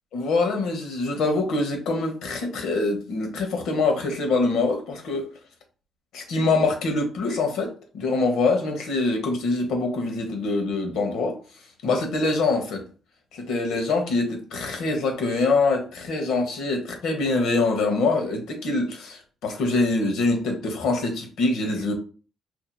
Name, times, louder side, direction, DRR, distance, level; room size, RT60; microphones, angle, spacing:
voice 1, 0.1-5.3 6.1-11.4 11.8-12.8 13.3-21.9, left 3 dB, 85° left, 1.0 m, -24 dB
4.4 x 2.7 x 2.2 m
cardioid pair, 90°, 0 cm